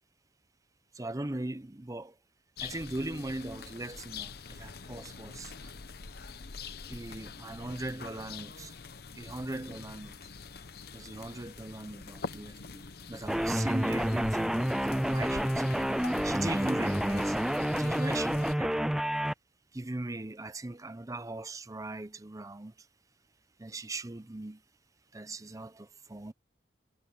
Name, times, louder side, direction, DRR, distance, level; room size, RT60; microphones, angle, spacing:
voice 1, 1.0-2.1 2.6-5.5 6.9-8.7 9.2-10.1 10.9-17.4 17.7-18.9 19.7-22.7 23.6-24.6 25.1-26.3, right 2 dB, 20° right, 0.7 m, -39 dB
sound 1, 2.6-18.6, left 5 dB, 60° left, 1.0 m, -45 dB
sound 2, 13.3-19.3, equal, ahead, 0.3 m, -29 dB
head